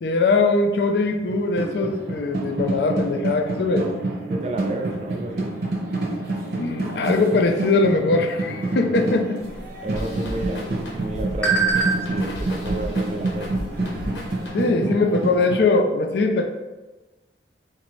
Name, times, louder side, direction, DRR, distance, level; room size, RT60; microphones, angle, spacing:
voice 1, 0.0-3.9 6.6-9.4 14.5-16.5, left 3 dB, 65° left, 4 dB, 0.4 m, -21 dB
sound 1, 1.1-15.6, right 2 dB, 65° right, 0.7 m, -28 dB
voice 2, 4.2-5.5 9.0-9.1 9.8-13.6, right 2 dB, 35° right, 4 dB, 0.4 m, -32 dB
sound 2, 9.4-14.5, right 4 dB, 5° left, 0.8 m, -29 dB
sound 3, 10.0-14.9, equal, 85° left, 0.8 m, -35 dB
3.9 x 2.6 x 3.0 m, 1.1 s
head